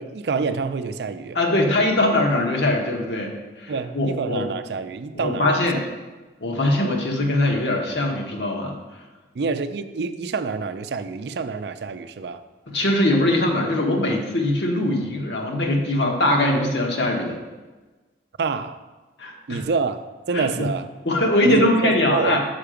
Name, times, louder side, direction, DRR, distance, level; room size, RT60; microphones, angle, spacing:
voice 1, 0.0-1.4 3.7-5.6 9.3-12.4 18.4-18.8 19.5-20.9 21.4-22.4, right 4 dB, 70° right, 11 dB, 0.4 m, -27 dB
voice 2, 1.3-4.4 5.1-5.8 6.4-8.8 12.7-17.4 19.2-19.6 20.3-20.7 21.0-22.4, left 1 dB, 85° left, 0 dB, 1.3 m, -21 dB
5.9 x 5.7 x 5.0 m, 1.2 s
head